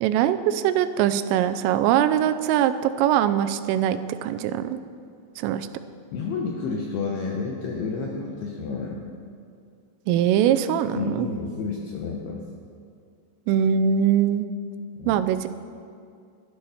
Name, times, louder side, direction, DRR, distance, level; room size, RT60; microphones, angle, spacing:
voice 1, 0.0-4.8 5.4-5.7 10.1-11.3 13.5-14.5 15.1-15.5, right 10 dB, 90° right, 11 dB, 3.2 m, -22 dB
voice 2, 6.1-9.0 10.9-12.5 15.0-15.2, left 4 dB, 75° left, 0 dB, 2.4 m, -30 dB
12.5 x 12.0 x 5.7 m, 2.3 s
omnidirectional pair, 5.7 m